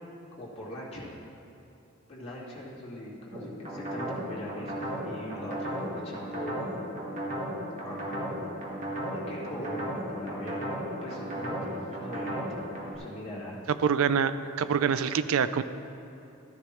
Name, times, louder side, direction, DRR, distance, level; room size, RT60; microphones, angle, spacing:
voice 1, 0.4-1.2 2.1-4.8 5.0-6.6 7.8-8.5 9.1-10.7 11.0-12.6 13.0-13.6, left 1 dB, 30° left, -7 dB, 2.2 m, -41 dB
sound 1, 3.3-12.9, right 1 dB, 35° right, 1.7 m, -35 dB
voice 2, 13.8-15.6, right 7 dB, 80° right, 13 dB, 0.4 m, -25 dB
13.5 x 10.5 x 3.2 m, 2.9 s
head